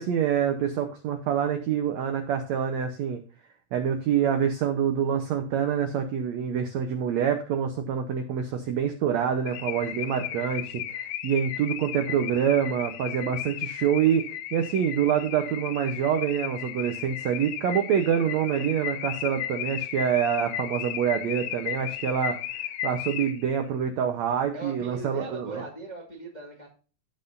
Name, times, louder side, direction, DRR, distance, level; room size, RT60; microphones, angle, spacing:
voice 1, 0.0-3.2 3.7-25.6, right 8 dB, 85° right, 6 dB, 1.5 m, -26 dB
Car / Alarm, 9.5-23.6, left 11 dB, 75° left, 2.1 m, -35 dB
voice 2, 24.5-26.7, right 2 dB, 30° left, -1 dB, 0.8 m, -39 dB
15.5 x 5.7 x 2.6 m, 0.37 s
omnidirectional pair, 4.2 m